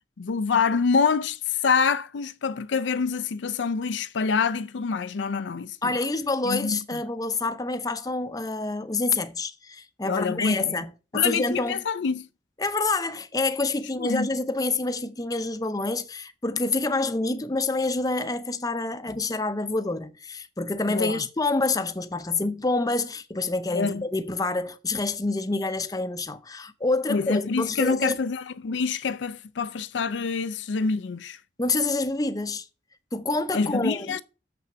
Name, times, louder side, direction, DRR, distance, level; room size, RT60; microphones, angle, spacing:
voice 1, 0.2-5.9 6.4-7.0 10.0-10.8 11.1-12.3 14.0-14.3 20.9-21.2 23.7-24.0 27.1-31.4 33.5-34.2, left 5 dB, 75° left, 0.5 m, -26 dB
voice 2, 5.8-11.8 12.6-28.2 31.6-32.6 33.1-34.2, left 3 dB, 20° left, 0.6 m, -27 dB
6.9 x 5.9 x 6.8 m
head